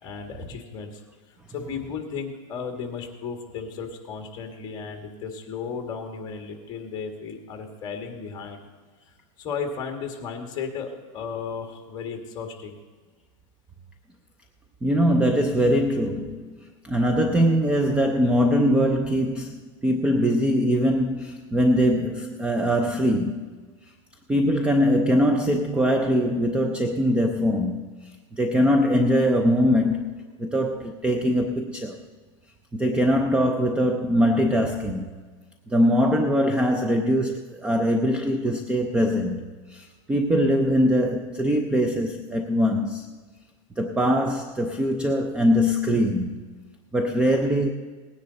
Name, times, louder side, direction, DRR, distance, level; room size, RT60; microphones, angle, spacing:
voice 1, 0.0-1.0 1.5-8.7 9.4-12.8, left 5 dB, 25° left, 4 dB, 1.9 m, -34 dB
voice 2, 14.8-16.6 16.8-23.4 24.3-30.1 30.4-32.0 32.7-35.1 35.7-43.1 43.8-46.4 46.9-47.7, equal, 5° right, 5 dB, 0.4 m, -22 dB
18.5 x 9.9 x 4.0 m, 1.5 s
supercardioid pair, 155°, 16 cm